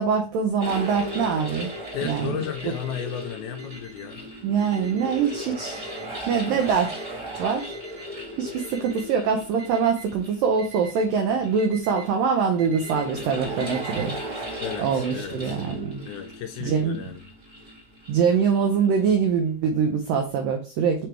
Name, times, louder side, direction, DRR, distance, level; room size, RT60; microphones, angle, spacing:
voice 1, 0.0-1.7 2.0-2.3 2.6-2.7 4.4-5.9 6.3-6.9 7.3-7.7 8.4-14.4 14.8-16.0 16.6-17.0 18.1-21.1, right 6 dB, 85° right, 3 dB, 1.9 m, -24 dB
sound 1, 0.6-19.2, equal, 30° right, 1.4 m, -37 dB
Alarm, 0.7-1.0 1.6-2.0 2.6-3.0 3.6-4.0 4.6-5.0 5.6-6.1 6.6-7.1 7.6-8.1 8.6-9.1 9.6-10.1 10.6-11.0 11.6-12.0 12.6-13.0 13.6-14.0, right 6 dB, 50° right, 1.7 m, -44 dB
voice 2, 1.9-4.3 6.5-6.9 14.6-15.6 16.1-17.3, left 9 dB, 80° left, 5 dB, 2.3 m, -34 dB
6.4 x 3.5 x 4.5 m, 0.36 s
omnidirectional pair, 4.9 m